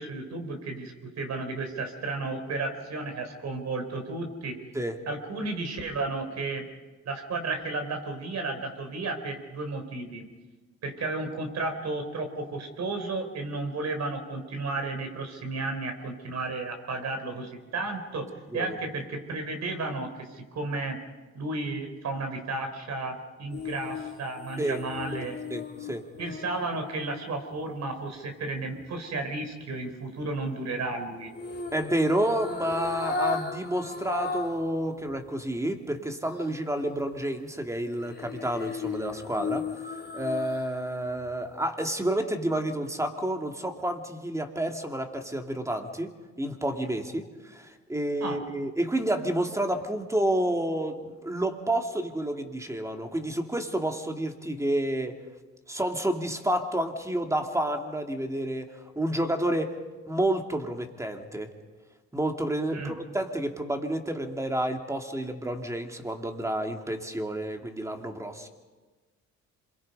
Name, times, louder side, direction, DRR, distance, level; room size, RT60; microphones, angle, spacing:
voice 1, 0.0-4.5 5.1-6.7 7.0-10.2 10.8-18.2 18.5-21.0 21.3-25.4 26.2-31.3 48.2-48.4 62.7-62.9, right 3 dB, 60° right, 5 dB, 4.3 m, -33 dB
sound 1, 23.5-27.7 31.3-34.7 35.1-35.2 38.0-40.9 41.2-41.4, left 4 dB, 35° left, 2.7 m, -36 dB
voice 2, 25.2-26.0 31.7-46.1 46.4-55.2 55.7-59.7 60.1-61.5 62.1-68.5, right 1 dB, 10° right, 4 dB, 2.4 m, -30 dB
27.0 x 22.5 x 5.5 m, 1.3 s
cardioid pair, 90°, 30 cm